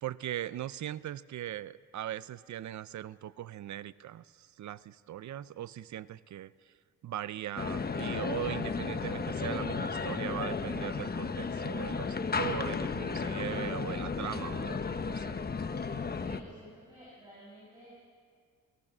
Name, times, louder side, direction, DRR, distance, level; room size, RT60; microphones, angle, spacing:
voice 1, 0.0-6.5 7.0-15.4, right 12 dB, 60° right, 17 dB, 0.6 m, -39 dB
sound 1, 7.6-16.4, left 5 dB, 30° left, 1.1 m, -34 dB
voice 2, 16.2-18.0, right 1 dB, 10° right, -6 dB, 7.7 m, -52 dB
29.0 x 18.0 x 6.2 m, 2.1 s
cardioid pair, 100°, 33 cm